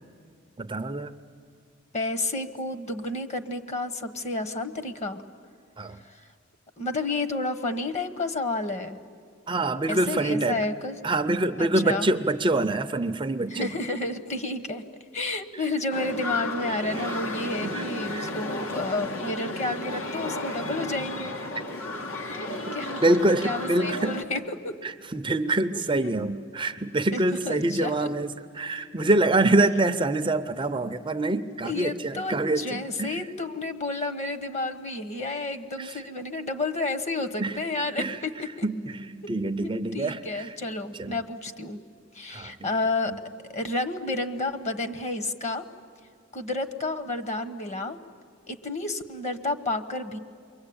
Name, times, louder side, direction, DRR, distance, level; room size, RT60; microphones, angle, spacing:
voice 1, 0.6-1.1 5.8-6.0 9.5-10.6 11.0-13.7 16.9-17.1 17.6-18.3 23.0-24.1 24.8-33.2 35.8-36.0 37.4-37.5 38.0-38.2 38.6-40.5 41.0-41.2 42.3-42.5, right 2 dB, 25° right, 9 dB, 0.6 m, -25 dB
voice 2, 1.9-5.2 6.8-9.0 9.9-10.9 11.6-12.1 13.5-14.8 15.1-21.3 22.1-22.5 22.7-23.0 23.4-24.7 25.7-26.1 27.1-27.9 29.6-29.7 31.6-38.7 39.5-41.8 42.1-43.1 43.5-45.6 46.3-48.0 48.5-50.2, left 2 dB, 35° left, 9 dB, 1.2 m, -31 dB
sound 1, 15.9-24.2, left 1 dB, 80° left, 2.1 m, -33 dB
28.5 x 23.0 x 8.8 m, 2.2 s
head